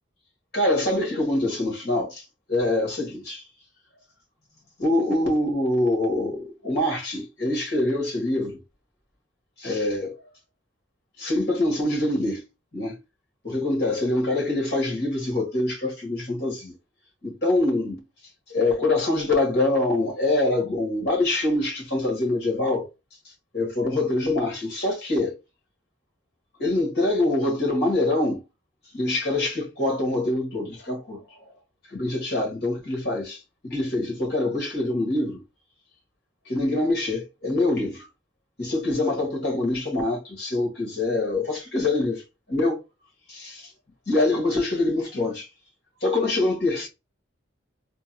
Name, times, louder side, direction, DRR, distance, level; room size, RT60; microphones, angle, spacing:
voice 1, 0.5-2.2 2.5-3.4 4.8-8.6 9.6-10.2 11.2-12.4 12.7-13.0 13.4-16.7 17.2-18.0 18.5-22.9 23.5-25.3 26.6-28.4 28.9-31.4 31.9-35.4 36.5-38.1 38.6-42.2 42.5-42.8 43.3-43.7 44.1-45.5 46.0-46.9, left 2 dB, 55° left, 1.7 m, -24 dB
3.8 x 2.4 x 2.8 m
head